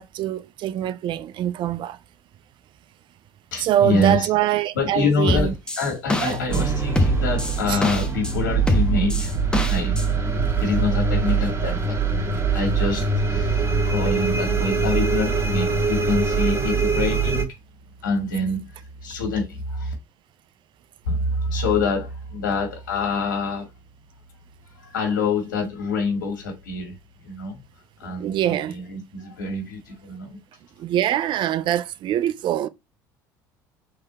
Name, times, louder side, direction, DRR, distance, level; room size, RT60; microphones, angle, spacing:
voice 1, 0.0-2.0 3.6-5.6 6.2-6.5 7.7-7.8 28.2-28.8 30.8-32.7, right 12 dB, 50° right, 0.5 m, -24 dB
voice 2, 3.5-4.3 4.8-10.0 10.4-17.6 18.0-19.9 21.1-23.7 24.7-27.0 27.2-27.6 28.0-30.4, left 3 dB, 85° left, 1.8 m, -26 dB
sound 1, 5.3-6.6 6.9-8.3 8.7-10.0, left 2 dB, 10° left, 1.0 m, -24 dB
sound 2, 6.5-17.4, right 5 dB, 25° right, 1.4 m, -23 dB
3.7 x 3.3 x 3.9 m
hypercardioid pair, 70°, 10 cm